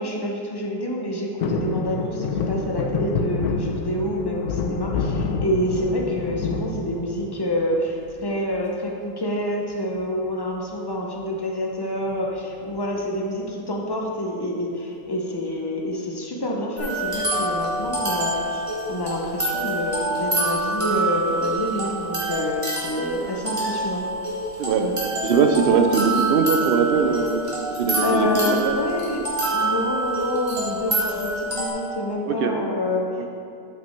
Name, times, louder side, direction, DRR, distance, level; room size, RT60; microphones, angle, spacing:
voice 1, 0.0-24.0 24.8-24.9 27.7-29.2 29.5-33.1, left 1 dB, 35° left, -1 dB, 0.3 m, -27 dB
sound 1, 1.4-7.6 8.0-8.6 9.9-10.3 10.6-10.7 10.9-11.2 12.1-13.0 13.5-13.6, left 4 dB, 80° left, 1.1 m, -28 dB
sound 2, 16.8-31.7, right 1 dB, 20° right, 1.7 m, -26 dB
voice 2, 25.2-27.4 27.8-28.7 32.3-32.6 33.2-33.3, right 5 dB, 80° right, 5 dB, 0.5 m, -21 dB
7.6 x 5.8 x 4.4 m, 2.5 s
omnidirectional pair, 1.6 m